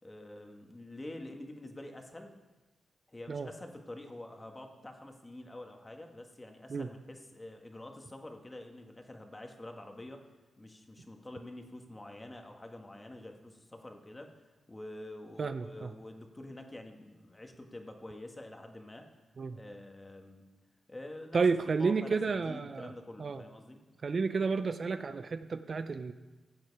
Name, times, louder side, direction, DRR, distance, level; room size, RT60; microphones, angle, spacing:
voice 1, 0.0-2.4 3.1-10.2 10.6-14.3 14.7-19.0 19.5-20.4 20.9-21.4 21.8-22.2 22.4-23.8, left 1 dB, 20° left, 3 dB, 1.7 m, -47 dB
voice 2, 15.4-15.9 19.4-19.6 21.3-22.9 23.2-23.4 24.0-26.1, right 4 dB, 50° right, 10 dB, 0.5 m, -31 dB
15.0 x 7.8 x 4.7 m, 1.2 s
cardioid pair, 65°, 0 cm